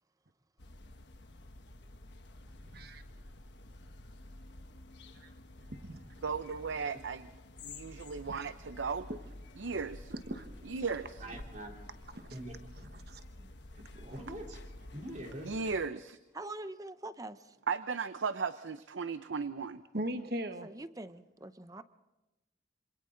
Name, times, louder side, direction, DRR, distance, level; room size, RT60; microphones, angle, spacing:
sound 1, 0.6-15.9, left 2 dB, 70° left, 1.2 m, -51 dB
voice 1, 5.6-6.0 8.3-8.5 9.1-9.2 10.1-10.5 12.1-12.4 12.9-13.2 19.9-20.7, right 1 dB, 55° right, 8 dB, 1.3 m, -39 dB
voice 2, 6.2-7.3 7.6-9.1 9.6-10.1 10.7-11.2 15.4-16.2 17.7-19.8, right 5 dB, 90° right, 12 dB, 0.6 m, -36 dB
voice 3, 11.2-11.8 12.3-12.9 13.7-14.6 14.9-15.6, right 1 dB, 40° right, 0 dB, 3.7 m, -44 dB
voice 4, 16.3-17.6 20.6-21.8, right 2 dB, 20° right, 12 dB, 0.7 m, -44 dB
27.0 x 26.5 x 3.9 m, 1.0 s
head